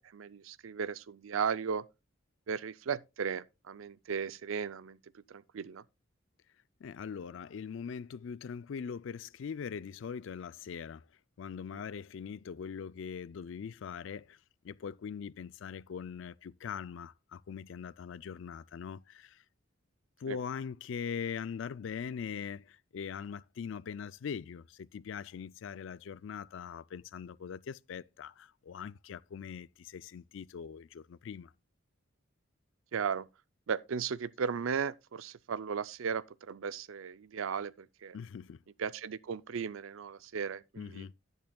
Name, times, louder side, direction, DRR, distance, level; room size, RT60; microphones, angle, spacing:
voice 1, 0.0-1.8 2.5-5.0 5.3-5.8 20.3-20.4 32.9-33.3 33.7-38.2 38.8-41.1, right 6 dB, 80° right, 0.5 m, -36 dB
voice 2, 6.8-11.1 11.4-14.4 14.6-19.4 20.2-31.5 38.1-38.6 40.8-41.1, left 6 dB, 70° left, 0.4 m, -41 dB
10.5 x 10.5 x 2.2 m
head